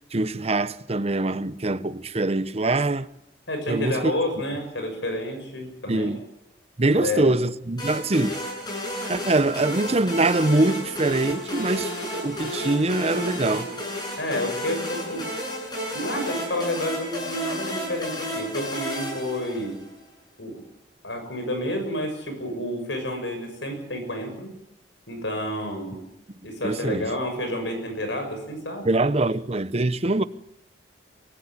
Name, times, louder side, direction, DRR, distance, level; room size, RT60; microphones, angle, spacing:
voice 1, 0.1-3.1 3.7-4.1 5.9-6.2 6.8-8.4 9.1-13.7 26.6-27.1 28.8-30.2, right 2 dB, 35° right, 0.8 m, -23 dB
voice 2, 3.5-6.1 6.9-7.3 14.2-15.2 15.9-19.8 20.4-20.6 21.0-24.5 25.1-26.0 26.4-29.0, left 1 dB, 80° left, 6.7 m, -30 dB
sound 1, 7.8-20.0, equal, 25° left, 7.8 m, -32 dB
24.0 x 13.5 x 9.5 m
head